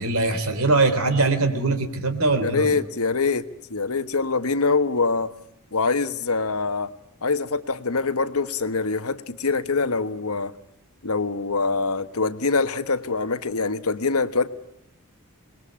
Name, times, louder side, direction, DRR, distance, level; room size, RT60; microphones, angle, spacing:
voice 1, 0.0-2.7, right 3 dB, 75° right, 3.5 m, -22 dB
voice 2, 2.4-5.3 5.7-6.9 7.2-10.5 11.0-14.5, left 4 dB, 85° left, 1.4 m, -24 dB
27.0 x 21.5 x 8.7 m
head